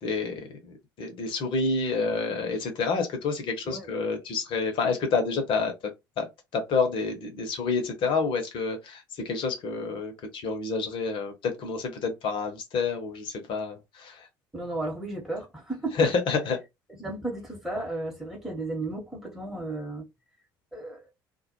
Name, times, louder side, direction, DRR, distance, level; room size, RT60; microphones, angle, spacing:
voice 1, 0.0-6.3 6.5-14.3 15.9-16.6, left 4 dB, 50° left, 0.8 m, -28 dB
voice 2, 14.5-16.1 16.9-20.1 20.7-21.1, right 2 dB, 5° right, 1.0 m, -34 dB
2.2 x 2.0 x 2.9 m
figure-of-eight pair, 55°, 11 cm